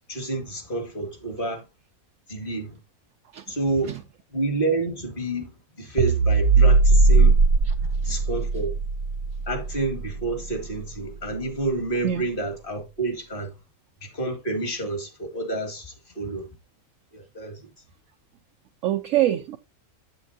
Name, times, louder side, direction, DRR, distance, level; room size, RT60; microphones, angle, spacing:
voice 1, 0.1-1.6 2.3-2.8 3.5-4.0 4.3-5.5 5.8-7.3 8.0-8.8 9.5-13.5 14.0-16.5 17.1-17.6, right 2 dB, 35° left, 2.2 m, -29 dB
sound 1, 6.0-10.5, right 3 dB, 85° right, 1.3 m, -19 dB
voice 2, 7.6-8.1 12.0-12.3 18.8-19.6, right 12 dB, 70° right, 0.9 m, -26 dB
8.3 x 7.8 x 2.7 m
omnidirectional pair, 1.5 m